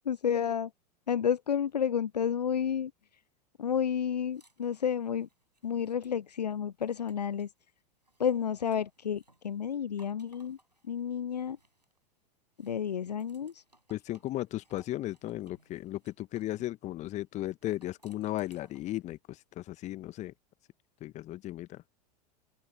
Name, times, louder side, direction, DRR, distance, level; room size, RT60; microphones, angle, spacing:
voice 1, 0.1-0.7 1.1-2.9 3.6-5.3 5.6-7.5 8.2-10.6 10.9-11.6 12.6-13.6, left 8 dB, 80° left, 0.5 m, -31 dB
sound 1, 3.9-7.6 8.0-12.2 12.6-16.6 17.6-19.0, right 1 dB, 90° right, 5.5 m, -66 dB
voice 2, 13.9-20.3 21.0-21.8, left 15 dB, 35° left, 1.4 m, -36 dB
open air
figure-of-eight pair, 85°, 21 cm